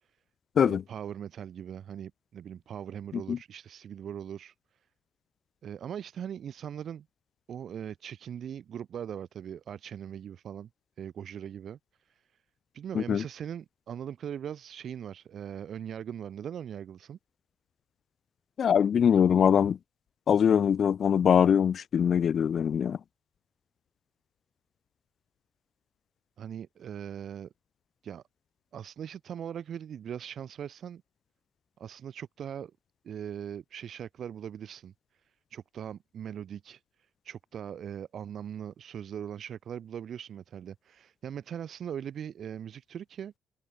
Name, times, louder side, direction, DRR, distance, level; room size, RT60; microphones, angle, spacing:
voice 1, 0.6-4.5 5.6-7.1 7.5-10.7 11.0-11.8 12.7-17.2 26.4-27.5 28.0-28.2 28.7-31.0 31.8-32.7 33.0-34.9 35.5-36.8 37.2-43.3, right 9 dB, 60° right, 3.8 m, -40 dB
voice 2, 18.6-19.8 20.3-23.0, left 8 dB, 55° left, 0.8 m, -23 dB
cardioid pair, 90°, 0 cm